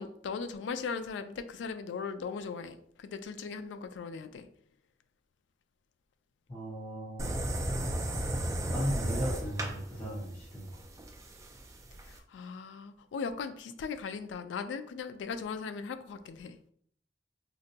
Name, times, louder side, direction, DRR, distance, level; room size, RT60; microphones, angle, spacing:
voice 1, 0.0-4.5 12.0-16.7, left 5 dB, 80° left, 10 dB, 0.3 m, -38 dB
voice 2, 6.5-7.3 8.7-10.7, equal, 30° left, -9 dB, 0.9 m, -36 dB
sound 1, 7.2-12.2, right 1 dB, 15° right, 0.3 m, -34 dB
4.0 x 2.1 x 2.7 m, 0.63 s
head